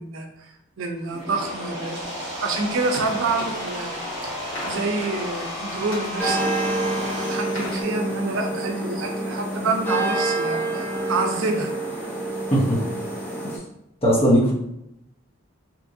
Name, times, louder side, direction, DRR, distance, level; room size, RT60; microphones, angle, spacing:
voice 1, 0.0-2.1 2.4-3.9 4.7-6.5 7.3-11.7, right 3 dB, 80° right, 3 dB, 0.5 m, -27 dB
sound 1, 1.0-7.4, equal, 30° right, 1.2 m, -33 dB
sound 2, 2.8-7.8, left 1 dB, 70° left, 1.2 m, -37 dB
sound 3, 6.2-13.6, right 2 dB, 10° left, 0.4 m, -27 dB
voice 2, 12.5-12.8 14.0-14.5, equal, 30° left, -4 dB, 0.8 m, -18 dB
2.9 x 2.5 x 2.5 m, 0.82 s
head